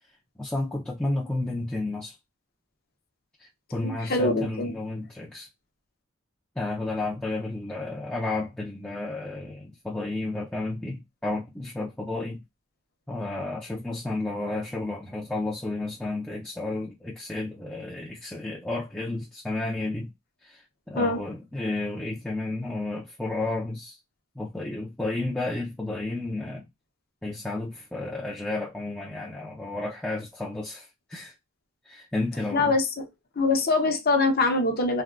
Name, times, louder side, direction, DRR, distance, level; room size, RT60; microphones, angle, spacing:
voice 1, 0.4-2.1 3.4-5.5 6.6-12.4 13.1-20.1 20.4-20.6 20.9-24.0 24.4-26.7 27.2-31.3 31.9-32.7, left 2 dB, 5° left, 0.4 m, -32 dB
voice 2, 3.8-4.7 21.0-21.2 32.5-33.0 33.4-35.0, left 3 dB, 45° left, 0.7 m, -23 dB
3.4 x 2.3 x 2.3 m
head